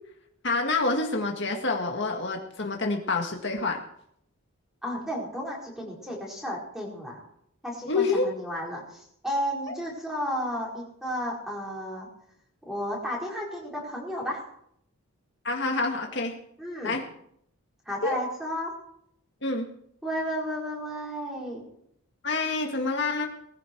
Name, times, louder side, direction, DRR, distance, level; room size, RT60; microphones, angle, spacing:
voice 1, 0.4-3.8 7.9-8.3 9.7-9.8 15.4-16.4 16.8-17.0 18.0-18.2 19.4-19.7 22.2-23.3, left 3 dB, 55° left, 2 dB, 1.9 m, -27 dB
voice 2, 4.8-7.2 7.6-12.1 12.6-14.5 16.6-17.0 17.9-18.8 20.0-21.7, equal, ahead, -3 dB, 4.7 m, -33 dB
20.0 x 14.5 x 4.7 m, 0.71 s
head